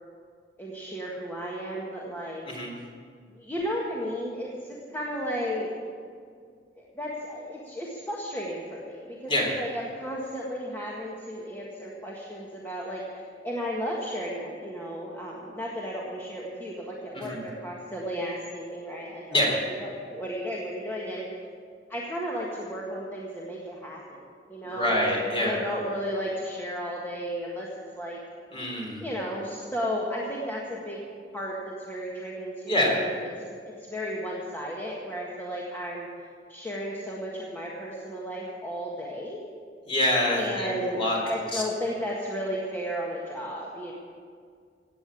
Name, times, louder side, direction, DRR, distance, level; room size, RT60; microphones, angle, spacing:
voice 1, 0.6-2.6 3.3-5.7 6.8-9.3 9.6-21.3 21.9-27.7 27.9-28.2 29.0-31.0 31.3-33.2 33.5-36.1 36.5-39.4 40.3-43.9, equal, 10° left, -4 dB, 1.7 m, -34 dB
voice 2, 24.6-25.6 28.5-29.0 32.7-33.0 39.9-41.6, left 1 dB, 30° left, -1 dB, 3.9 m, -26 dB
16.5 x 8.6 x 8.5 m, 2.1 s
head